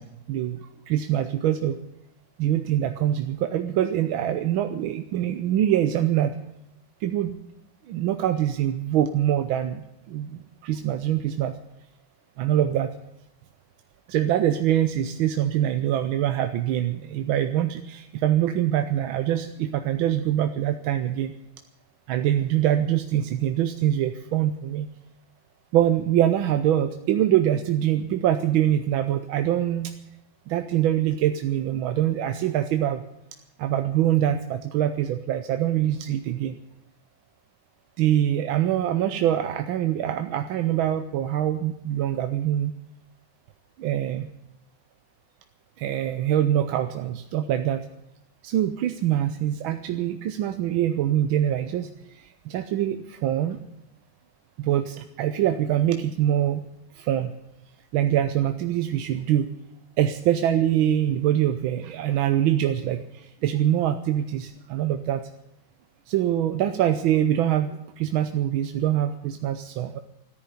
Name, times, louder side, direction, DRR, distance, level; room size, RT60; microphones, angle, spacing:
voice 1, 0.0-1.8 2.4-6.3 7.0-7.3 7.9-11.5 12.4-12.9 14.1-21.3 22.1-24.9 25.7-29.9 30.5-33.0 33.6-36.5 38.0-42.7 43.8-44.3 45.8-47.9 48.4-53.6 54.6-56.6 56.9-57.3 57.9-59.5 60.0-65.2 66.1-70.0, right 11 dB, 85° right, 8 dB, 1.6 m, -24 dB
13.5 x 10.5 x 9.8 m, 0.84 s
omnidirectional pair, 2.2 m